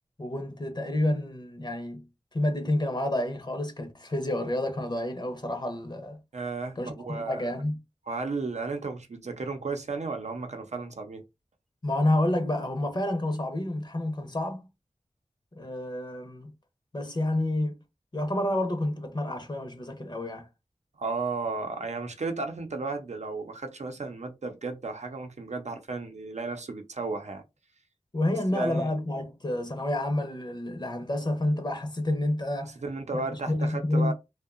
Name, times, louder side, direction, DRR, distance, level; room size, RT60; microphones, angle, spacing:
voice 1, 0.2-2.0 2.3-6.2 6.8-7.8 11.8-14.7 15.6-16.5 16.9-17.8 18.1-20.5 28.1-32.7 33.1-34.1, left 1 dB, 40° left, 0.6 m, -29 dB
voice 2, 6.3-7.4 8.1-11.2 21.0-27.4 28.5-28.9 32.6-34.1, right 3 dB, 75° right, 0.6 m, -34 dB
2.7 x 2.2 x 2.4 m
wide cardioid pair, 55°, 12 cm